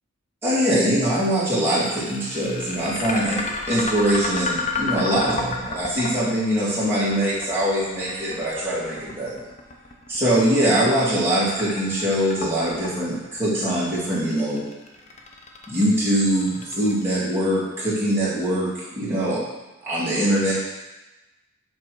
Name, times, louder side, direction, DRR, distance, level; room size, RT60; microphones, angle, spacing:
voice 1, 0.4-9.4 10.1-14.6 15.7-19.4 19.8-20.5, right 1 dB, 10° right, -10 dB, 2.2 m, -22 dB
sound 1, 1.2-17.4, left 3 dB, 35° left, 0.7 m, -32 dB
7.5 x 3.5 x 4.6 m, 1.1 s
head